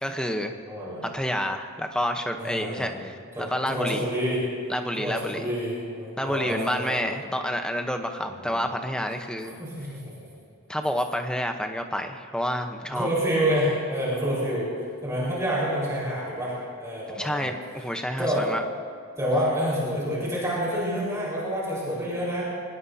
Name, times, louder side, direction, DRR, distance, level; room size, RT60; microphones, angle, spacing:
voice 1, 0.0-0.5 1.1-3.2 3.5-4.1 4.7-5.5 6.2-9.6 10.7-13.1 17.2-18.6, equal, 5° left, 5 dB, 0.9 m, -29 dB
voice 2, 0.6-1.0 2.4-4.4 5.0-7.1 8.2-8.7 9.4-10.0 12.9-14.7 15.0-17.5 18.2-18.4 19.2-22.4, equal, 15° right, -7 dB, 4.9 m, -28 dB
23.5 x 19.0 x 2.8 m, 2.3 s
head